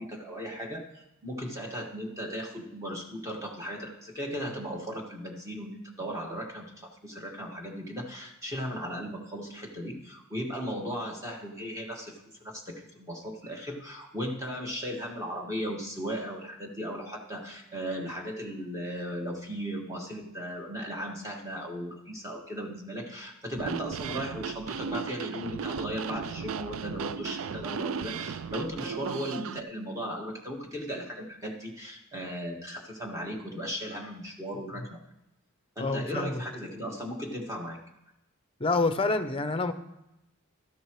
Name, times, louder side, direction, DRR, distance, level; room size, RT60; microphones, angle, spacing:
voice 1, 0.0-35.0 35.8-37.8, equal, 15° right, -1 dB, 1.8 m, -37 dB
sound 1, 23.5-29.6, right 6 dB, 70° right, 0.4 m, -36 dB
voice 2, 35.8-36.4 38.6-39.7, left 3 dB, 25° left, 9 dB, 0.7 m, -27 dB
13.0 x 9.8 x 3.2 m, 0.89 s
head